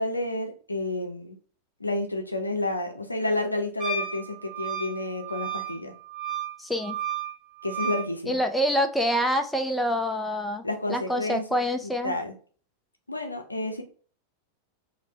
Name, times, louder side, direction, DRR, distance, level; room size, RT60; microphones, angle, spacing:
voice 1, 0.0-1.4 1.8-5.9 7.6-8.4 10.6-11.4 11.8-12.3 13.1-13.8, left 2 dB, 85° left, 4 dB, 0.5 m, -30 dB
Wind instrument woodwind instrument, 3.8-8.1, right 6 dB, 25° right, 1.2 m, -33 dB
voice 2, 6.6-7.0 8.3-12.2, equal, 5° left, 6 dB, 0.4 m, -26 dB
3.3 x 2.1 x 2.7 m, 0.41 s
figure-of-eight pair, 90°, 0 cm